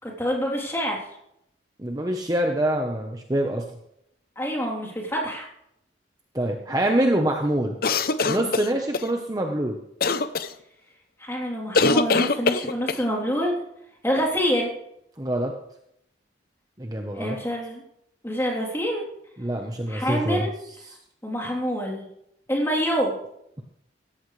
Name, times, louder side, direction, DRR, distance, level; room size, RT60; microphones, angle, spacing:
voice 1, 0.0-1.0 4.3-5.5 11.2-13.5 14.0-14.7 17.1-17.8 18.2-19.0 19.9-20.5 21.2-22.0 22.5-23.1, equal, 15° left, -1 dB, 3.4 m, -26 dB
voice 2, 1.8-3.6 6.3-7.8 8.3-9.8 15.2-15.5 16.8-17.4 19.4-20.4 20.9-21.0, right 1 dB, 20° right, 2 dB, 1.0 m, -25 dB
sound 1, 7.8-9.1 10.0-10.5 11.7-13.0, left 3 dB, 50° left, 0.7 m, -22 dB
17.5 x 15.0 x 3.3 m, 0.77 s
head